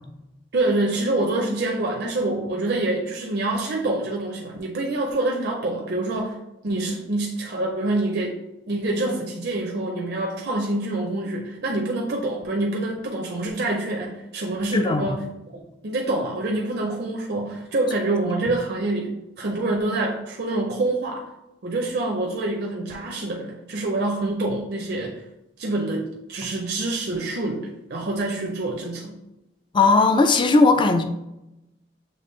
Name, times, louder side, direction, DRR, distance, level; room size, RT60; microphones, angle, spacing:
voice 1, 0.5-6.4 6.6-8.4 8.7-15.2 15.8-21.2 21.6-25.2 25.6-29.2, right 2 dB, 60° right, 0 dB, 0.5 m, -26 dB
voice 2, 14.7-15.2 29.7-31.0, left 3 dB, 25° left, 7 dB, 0.4 m, -17 dB
6.7 x 2.5 x 3.2 m, 0.92 s
head